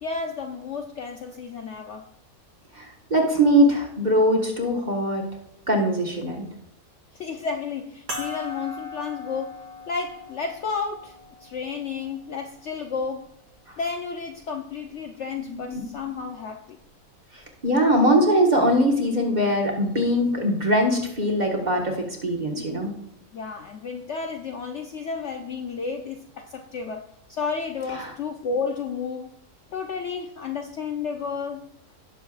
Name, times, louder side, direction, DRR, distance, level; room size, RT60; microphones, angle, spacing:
voice 1, 0.0-2.1 7.1-9.6 9.9-13.2 13.8-16.8 23.3-27.0 27.3-29.3 29.7-31.7, left 5 dB, 60° left, 3 dB, 0.8 m, -32 dB
voice 2, 3.1-5.2 5.7-6.5 15.4-15.8 17.6-22.9 27.9-28.1, equal, 30° right, 0 dB, 1.6 m, -21 dB
sound 1, 8.1-12.9 13.7-13.8 15.9-16.0, left 2 dB, 65° right, 2.3 m, -39 dB
17.5 x 6.8 x 2.5 m, 0.77 s
omnidirectional pair, 1.7 m